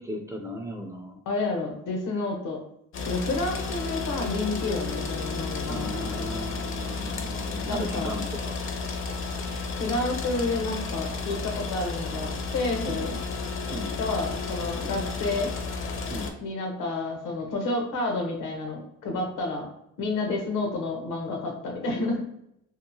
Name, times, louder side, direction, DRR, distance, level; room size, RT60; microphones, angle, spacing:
voice 1, 0.0-1.2 5.7-8.6 12.9-13.0 13.7-13.9 16.1-16.3, left 1 dB, 10° right, 3 dB, 0.3 m, -36 dB
voice 2, 1.3-2.6 3.0-6.4 7.7-8.1 9.8-13.1 14.0-15.5 16.4-19.7 20.0-22.2, left 2 dB, 85° left, 2 dB, 0.8 m, -30 dB
sound 1, 2.9-16.3, left 4 dB, 45° left, 0.5 m, -32 dB
2.9 x 2.1 x 2.6 m, 0.76 s
cardioid pair, 90°, 30 cm